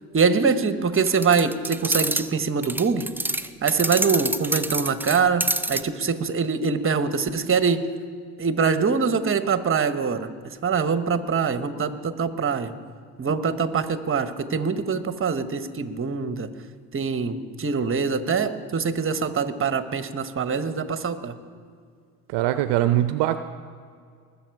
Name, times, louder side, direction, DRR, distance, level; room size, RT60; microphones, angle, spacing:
voice 1, 0.1-3.1 3.6-7.9 8.4-10.3 10.6-12.7 13.2-16.5 16.9-21.4, right 5 dB, 25° right, 11 dB, 1.1 m, -24 dB
sound 1, 0.9-2.3 2.6-5.8, right 2 dB, 5° right, 0.4 m, -27 dB
voice 2, 22.3-23.4, right 13 dB, 65° right, 11 dB, 0.7 m, -22 dB
20.5 x 7.2 x 4.7 m, 2.1 s
hypercardioid pair, 70°, 46 cm